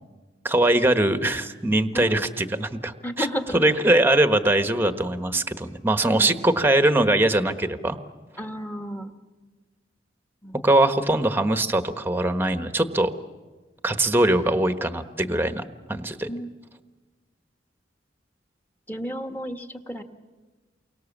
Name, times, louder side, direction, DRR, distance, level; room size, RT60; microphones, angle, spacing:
voice 1, 0.4-8.0 10.6-13.1 13.8-15.6 15.9-16.3, right 1 dB, 10° right, 9 dB, 1.2 m, -22 dB
voice 2, 3.0-3.6 6.0-6.4 8.4-9.1 10.4-10.6 16.3-16.5 18.9-20.0, equal, 10° left, 5 dB, 1.7 m, -32 dB
29.5 x 23.5 x 7.3 m, 1.3 s
head